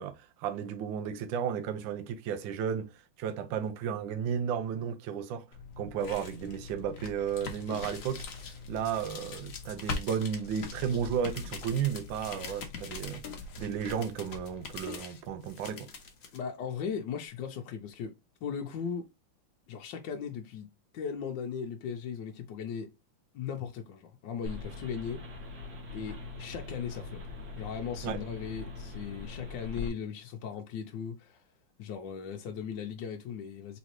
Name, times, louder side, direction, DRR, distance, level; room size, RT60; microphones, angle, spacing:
voice 1, 0.0-5.5 5.8-8.2 8.7-13.2 13.6-15.9 28.0-28.2, right 8 dB, 75° right, 1.4 m, -33 dB
sound 1, 5.5-16.4, left 4 dB, 55° left, 1.0 m, -42 dB
voice 2, 16.3-19.1 19.7-20.7 20.9-22.9 23.3-25.2 25.9-27.2 27.6-31.4 31.8-33.8, left 7 dB, 70° left, 1.3 m, -38 dB
sound 2, 24.5-29.9, left 3 dB, 60° right, 1.9 m, -42 dB
4.0 x 3.9 x 3.0 m
omnidirectional pair, 2.2 m